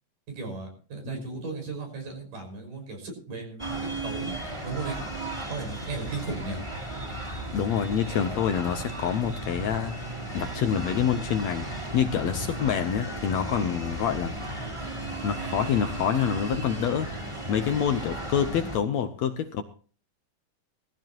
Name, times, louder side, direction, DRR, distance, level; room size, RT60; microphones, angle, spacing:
voice 1, 0.3-3.7 4.0-5.0 5.5-6.6, right 3 dB, 75° right, 3 dB, 7.2 m, -36 dB
sound 1, 3.6-18.8, right 1 dB, 10° right, 3.1 m, -35 dB
voice 2, 7.5-10.0 10.3-11.7 11.9-14.4 15.2-17.1 17.5-19.6, left 8 dB, 70° left, 8 dB, 1.8 m, -26 dB
20.0 x 14.5 x 3.0 m, 0.41 s
omnidirectional pair, 3.9 m